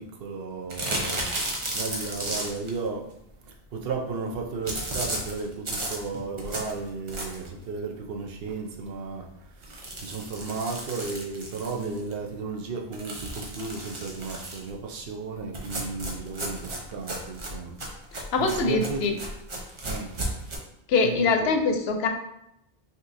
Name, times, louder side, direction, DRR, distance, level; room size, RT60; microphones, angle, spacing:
voice 1, 0.0-3.1 3.5-9.3 9.6-17.7 18.4-19.2 19.8-20.1 21.0-21.6, right 4 dB, 70° right, 1 dB, 0.9 m, -34 dB
sound 1, 0.7-2.8 4.7-7.6 8.0-8.1 8.5-8.6 8.8-8.9 9.6-12.1 12.9-14.7 15.5-20.6, right 1 dB, 35° right, 0.7 m, -34 dB
voice 2, 18.1-19.2 20.9-22.1, left 4 dB, 90° left, 5 dB, 0.8 m, -23 dB
5.4 x 2.9 x 2.6 m, 0.81 s
omnidirectional pair, 1.0 m